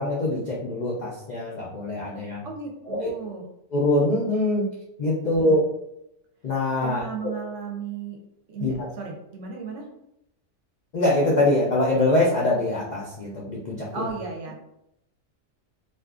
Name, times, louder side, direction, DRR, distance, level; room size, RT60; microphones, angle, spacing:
voice 1, 0.0-2.4 2.9-3.1 3.7-4.7 5.0-5.7 6.4-7.3 8.6-8.9 10.9-14.1, left 1 dB, 75° left, -4 dB, 0.4 m, -24 dB
voice 2, 2.4-3.5 5.2-5.7 6.8-8.2 8.5-9.9 13.9-14.6, right 5 dB, 70° right, 1 dB, 0.9 m, -35 dB
2.5 x 2.4 x 2.4 m, 0.81 s
omnidirectional pair, 1.4 m